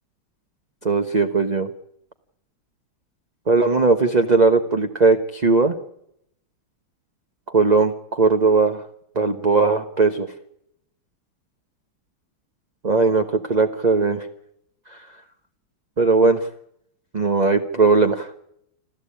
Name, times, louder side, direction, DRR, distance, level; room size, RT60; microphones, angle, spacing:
voice 1, 0.8-1.7 3.5-5.7 7.5-8.8 9.1-10.3 12.8-14.3 16.0-16.5 17.1-18.3, right 4 dB, 30° right, 5 dB, 0.9 m, -18 dB
27.0 x 14.5 x 8.6 m, 0.74 s
omnidirectional pair, 2.2 m